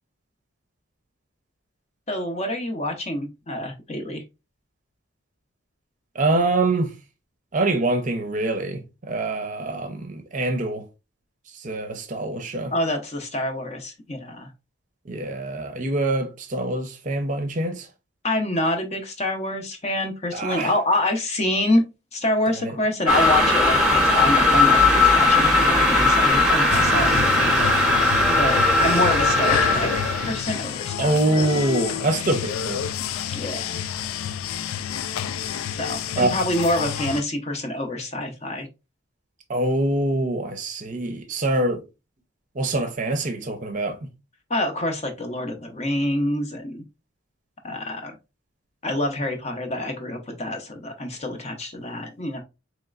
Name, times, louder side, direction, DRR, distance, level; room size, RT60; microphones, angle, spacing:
voice 1, 2.1-4.2 12.7-14.5 18.2-21.8 22.1-27.7 28.3-31.4 33.3-33.8 35.7-38.7 44.5-46.8 47.6-48.1 48.8-52.4, left 1 dB, 30° left, 0.6 m, -26 dB
voice 2, 6.2-6.9 7.5-10.8 11.6-12.7 15.1-17.9 20.3-20.7 22.6-22.7 31.0-32.8 36.2-36.3 39.5-41.8 42.6-44.0, right 2 dB, 40° right, 0.6 m, -24 dB
sound 1, 23.1-30.4, left 2 dB, 5° right, 0.8 m, -18 dB
sound 2, 26.7-37.2, left 8 dB, 90° left, 0.3 m, -29 dB
4.1 x 3.1 x 2.4 m
head